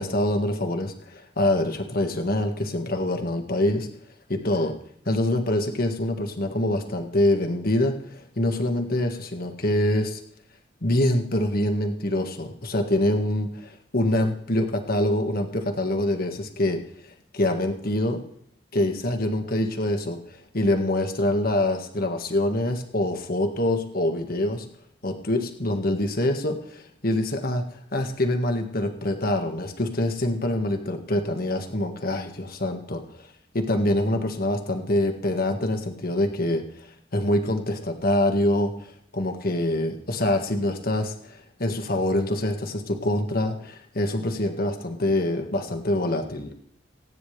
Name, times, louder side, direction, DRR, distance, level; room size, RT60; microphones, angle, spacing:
voice 1, 0.0-3.9 4.3-4.7 5.0-10.2 10.8-18.2 18.7-24.6 25.0-27.6 27.9-33.3 33.5-46.5, left 1 dB, 50° left, 4 dB, 1.7 m, -25 dB
26.5 x 9.6 x 3.4 m, 0.68 s
head